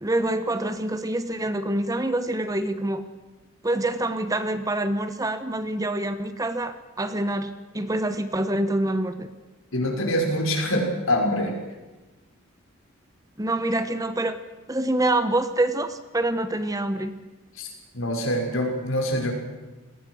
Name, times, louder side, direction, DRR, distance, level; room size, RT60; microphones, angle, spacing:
voice 1, 0.0-3.0 3.6-9.3 13.4-14.4 14.7-17.1, right 1 dB, 15° right, 11 dB, 1.0 m, -26 dB
voice 2, 9.7-11.6 17.6-17.7 17.9-19.3, equal, 70° left, 2 dB, 5.9 m, -25 dB
28.5 x 19.5 x 6.4 m, 1.1 s
head